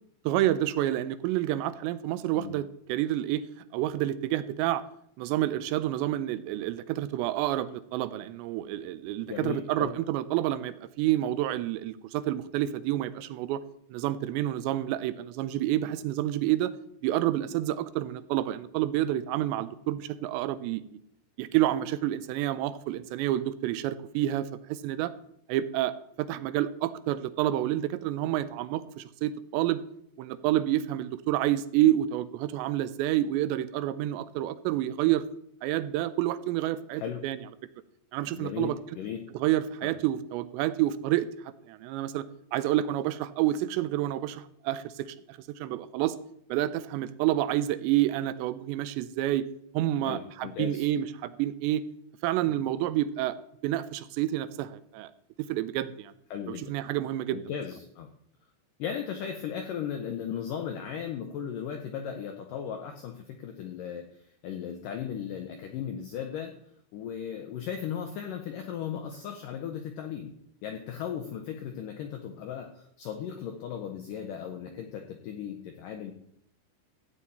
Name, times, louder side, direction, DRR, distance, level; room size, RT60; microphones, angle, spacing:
voice 1, 0.3-3.4 3.7-4.8 5.2-13.6 13.9-16.7 17.0-20.8 21.4-25.1 25.5-29.8 30.2-35.2 35.6-37.4 38.1-38.8 39.3-41.3 41.7-42.3 42.5-46.2 46.5-49.5 49.7-51.8 52.2-53.4 53.6-55.1 55.4-56.1 56.5-57.4, right 13 dB, 90° right, 13 dB, 2.9 m, -29 dB
voice 2, 9.3-9.9 37.0-37.2 38.2-39.3 39.8-39.9 50.0-50.9 52.5-52.6 56.3-56.7 57.3-58.1 58.8-66.6 66.9-70.3 70.6-76.1, left 8 dB, 90° left, 5 dB, 1.9 m, -36 dB
14.0 x 9.0 x 4.2 m, 0.71 s
omnidirectional pair, 5.0 m